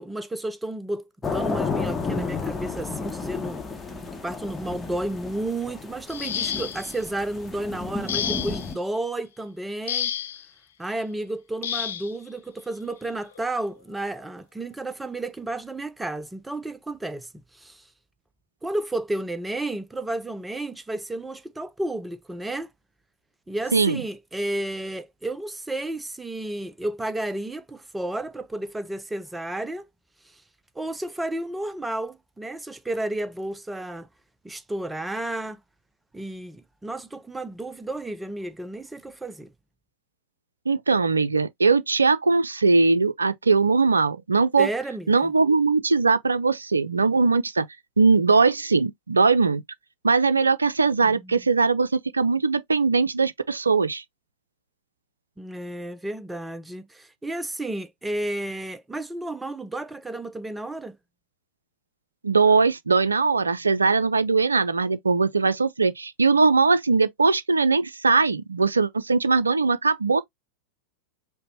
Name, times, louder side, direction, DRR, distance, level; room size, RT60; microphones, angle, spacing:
voice 1, 0.0-3.6 4.2-10.1 10.8-17.8 18.6-22.7 23.5-29.9 30.8-34.1 34.4-35.6 36.1-39.5 44.6-45.3 51.0-51.4 55.4-61.0, right 1 dB, 5° right, 0.4 m, -32 dB
sound 1, 1.2-8.7, left 4 dB, 10° left, 0.8 m, -32 dB
sound 2, 6.1-7.0 8.1-8.7 9.9-10.4 11.6-12.1 13.3-13.4 14.0-14.2, left 9 dB, 60° left, 0.5 m, -30 dB
voice 2, 40.7-44.7 45.1-47.7 48.0-49.6 50.0-54.0 62.2-70.2, right 4 dB, 75° right, 0.3 m, -20 dB
5.0 x 2.0 x 2.9 m
figure-of-eight pair, 90°, 0 cm